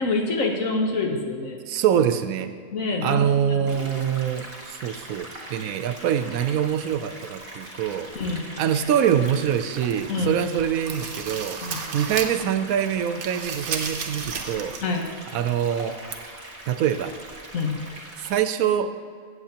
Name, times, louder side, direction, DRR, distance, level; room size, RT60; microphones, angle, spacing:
voice 1, 0.0-1.6 2.7-4.1 8.1-8.5 10.1-10.4 11.6-11.8 14.8-15.1 17.5-17.8, left 3 dB, 75° left, 1 dB, 1.6 m, -27 dB
voice 2, 1.7-2.5 3.0-8.1 8.6-11.6 11.9-14.8 15.3-16.0 16.7-17.2 18.2-19.0, right 9 dB, 85° right, 10 dB, 1.1 m, -24 dB
sound 1, 3.6-18.4, right 1 dB, 45° right, 1.7 m, -41 dB
sound 2, 9.0-10.1 10.5-12.5 12.8-14.9 15.2-15.3 16.1-16.2, right 5 dB, 65° right, 1.1 m, -34 dB
15.5 x 7.9 x 2.9 m, 2.1 s
omnidirectional pair, 1.4 m